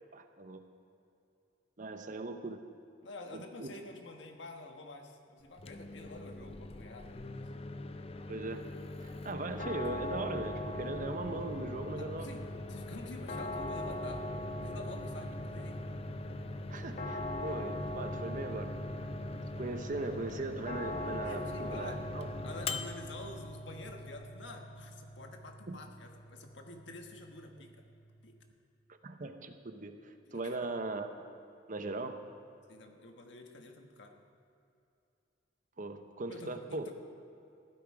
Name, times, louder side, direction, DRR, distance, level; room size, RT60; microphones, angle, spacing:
voice 1, 0.1-0.6 1.8-2.6 3.3-3.7 8.3-8.7 9.0-12.3 16.7-18.7 19.6-22.3 25.7-25.8 28.9-31.1 31.7-32.2 35.8-36.9, right 2 dB, 45° right, 7 dB, 0.9 m, -39 dB
voice 2, 3.0-7.4 12.0-14.3 14.6-15.8 21.1-22.0 22.4-27.8 28.2-28.4 30.3-30.7 32.7-34.2 36.3-36.9, left 2 dB, 80° left, 3 dB, 1.4 m, -48 dB
Microwave oven, 5.4-24.2, left 2 dB, 35° left, 0.5 m, -43 dB
sound 1, 9.6-28.5, left 1 dB, 50° left, 1.1 m, -42 dB
15.0 x 12.0 x 4.9 m, 2.7 s
head